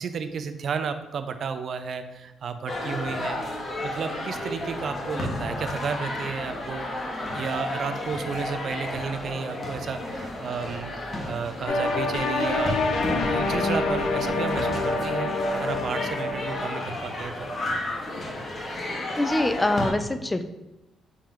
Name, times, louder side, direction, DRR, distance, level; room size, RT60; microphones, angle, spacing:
voice 1, 0.0-6.9 7.3-17.5, right 6 dB, 60° right, 9 dB, 0.4 m, -32 dB
sound 1, 2.7-19.9, left 1 dB, 40° left, 1.1 m, -33 dB
sound 2, 11.7-16.8, left 3 dB, 65° left, 0.7 m, -26 dB
voice 2, 19.1-20.4, left 2 dB, 15° left, 10 dB, 0.3 m, -24 dB
4.8 x 2.8 x 3.7 m, 0.98 s
cardioid pair, 90°, 0 cm